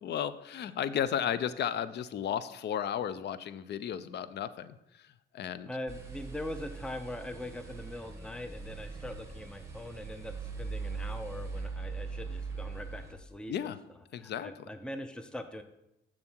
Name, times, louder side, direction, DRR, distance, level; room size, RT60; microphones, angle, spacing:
voice 1, 0.0-5.7 13.5-13.8 14.1-14.5, left 9 dB, 60° left, 15 dB, 0.5 m, -34 dB
voice 2, 5.7-13.5 14.1-15.6, left 1 dB, 5° left, 9 dB, 0.6 m, -42 dB
sound 1, 5.9-13.1, right 4 dB, 15° right, 1.5 m, -41 dB
7.2 x 6.5 x 4.5 m, 0.85 s
cardioid pair, 90°, 20 cm